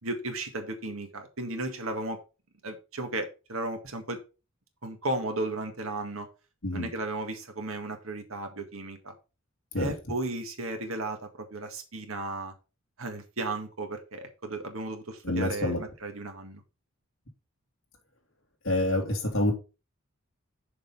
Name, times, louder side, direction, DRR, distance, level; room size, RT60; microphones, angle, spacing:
voice 1, 0.0-2.2 2.6-4.2 4.8-6.3 6.7-9.1 9.7-12.5 13.0-16.6, right 2 dB, 75° right, 1.8 m, -35 dB
voice 2, 15.2-15.8 18.6-19.5, left 1 dB, 70° left, 2.9 m, -27 dB
6.8 x 5.1 x 5.4 m
head